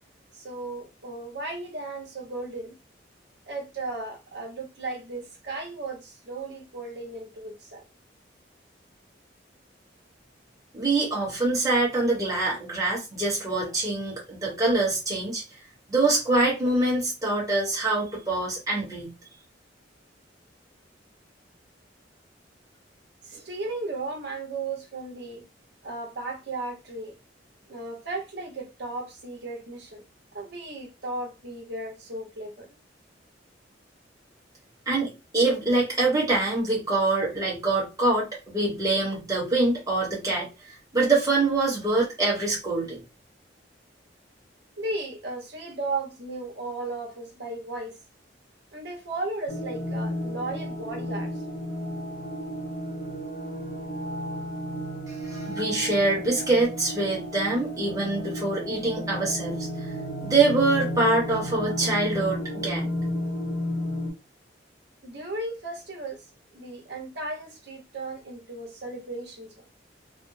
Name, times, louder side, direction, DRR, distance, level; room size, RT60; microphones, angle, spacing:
voice 1, 0.3-2.7 3.4-7.8 23.2-25.4 25.8-27.1 27.7-30.0 30.3-32.7 44.8-48.0 48.7-51.3 65.0-66.2 66.5-69.6, right 2 dB, 65° right, 1.0 m, -35 dB
voice 2, 10.7-15.4 15.9-19.1 34.9-40.5 40.9-43.0 55.1-59.7 60.2-62.9, right 2 dB, 20° right, 1.2 m, -25 dB
sound 1, 49.5-64.1, equal, 75° left, 0.9 m, -33 dB
3.4 x 2.0 x 2.6 m
head